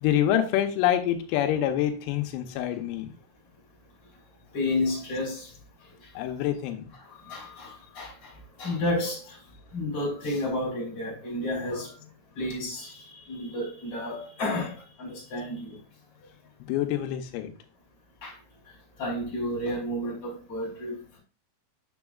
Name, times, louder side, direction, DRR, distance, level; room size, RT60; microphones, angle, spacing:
voice 1, 0.0-3.1 6.2-6.8 16.7-17.5, left 11 dB, 90° left, 3.5 m, -26 dB
voice 2, 4.5-5.5 7.2-8.3 8.6-9.4 9.7-11.9 12.3-15.8 18.2-18.3 19.0-21.2, left 1 dB, 35° left, 3.3 m, -31 dB
7.1 x 7.0 x 2.3 m
omnidirectional pair, 6.0 m